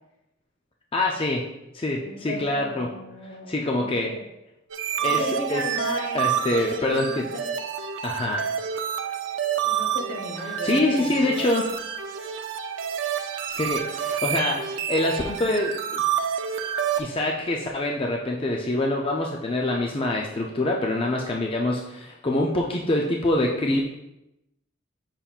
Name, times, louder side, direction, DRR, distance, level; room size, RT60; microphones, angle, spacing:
voice 1, 0.9-1.4 1.7-2.9 3.5-4.1 5.0-5.2 5.5-5.6 6.1-7.2 8.0-8.5 10.6-11.7 13.5-16.0 17.0-23.8, left 2 dB, 25° left, 0 dB, 0.4 m, -25 dB
voice 2, 2.0-4.2 5.0-7.4 9.6-11.3, left 1 dB, 70° left, 0 dB, 1.2 m, -35 dB
sound 1, 4.7-17.0, right 8 dB, 70° right, 0.5 m, -28 dB
7.0 x 5.6 x 2.4 m, 0.91 s
head